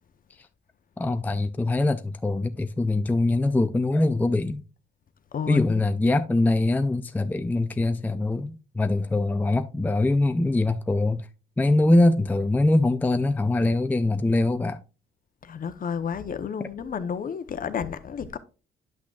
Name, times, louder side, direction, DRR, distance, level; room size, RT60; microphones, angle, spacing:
voice 1, 1.0-4.6 5.5-11.3 11.6-14.8, left 2 dB, 10° left, 0.4 m, -23 dB
voice 2, 5.3-5.8 15.4-18.4, left 7 dB, 45° left, 0.8 m, -31 dB
10.0 x 5.9 x 2.3 m
cardioid pair, 90°, 20 cm